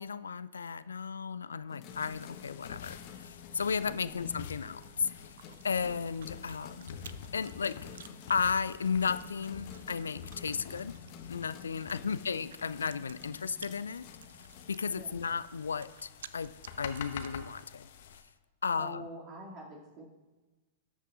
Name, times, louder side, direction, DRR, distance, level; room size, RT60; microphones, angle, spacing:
voice 1, 0.0-5.1 5.6-7.0 7.3-7.9 8.3-10.9 11.3-14.0 14.7-16.5 16.8-17.9 18.6-19.1, left 6 dB, 70° left, 16 dB, 0.3 m, -34 dB
sound 1, 1.7-15.5, left 8 dB, 35° left, 1.3 m, -51 dB
sound 2, 1.9-18.2, left 8 dB, 55° left, 0.8 m, -48 dB
Chewing mastication, 4.7-17.5, right 8 dB, 65° right, 0.4 m, -55 dB
voice 2, 18.7-20.0, equal, 35° right, -3 dB, 2.4 m, -46 dB
18.5 x 8.0 x 2.5 m, 1.2 s
figure-of-eight pair, 100°, 0 cm